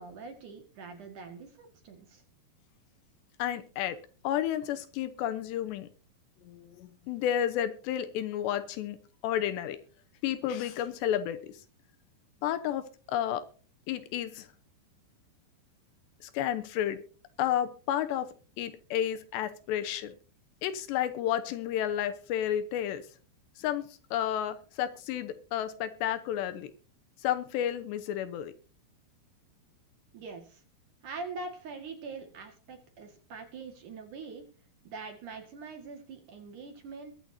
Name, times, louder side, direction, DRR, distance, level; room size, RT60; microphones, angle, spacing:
voice 1, 0.0-2.2 30.1-30.6 31.0-34.4 34.8-37.2, right 4 dB, 55° right, 4 dB, 2.7 m, -43 dB
voice 2, 3.4-4.0 4.2-5.9 6.4-9.0 9.2-9.8 10.2-11.5 12.4-13.4 13.9-14.5 16.2-17.0 17.4-20.1 20.6-23.0 23.6-26.7 27.2-28.5, left 11 dB, 75° left, 10 dB, 3.0 m, -31 dB
22.5 x 8.2 x 2.7 m, 0.40 s
omnidirectional pair, 5.3 m